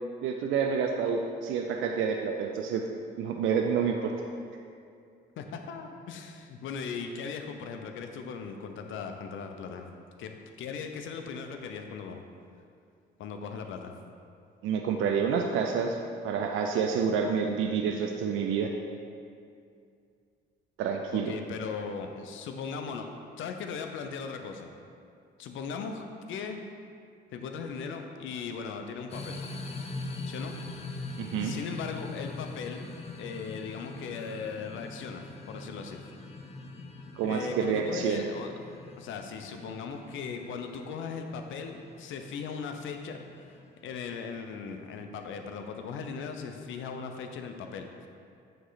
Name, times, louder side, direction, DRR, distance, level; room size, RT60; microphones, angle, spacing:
voice 1, 0.2-2.8 3.2-4.1 14.6-16.0 16.2-18.7 20.8-21.3 31.2-31.5 37.2-38.2, right 6 dB, 85° right, 3 dB, 0.4 m, -28 dB
voice 2, 5.4-9.9 10.2-12.2 13.2-13.9 21.1-23.1 23.4-24.7 25.4-26.6 27.3-29.4 30.3-30.5 31.4-32.9 33.2-36.0 37.2-38.5 39.0-43.5 43.8-47.9, left 5 dB, 80° left, 5 dB, 0.6 m, -38 dB
sound 1, 29.1-44.2, left 3 dB, 30° left, 0.6 m, -43 dB
8.8 x 3.1 x 4.0 m, 2.4 s
cardioid pair, 90°, 20 cm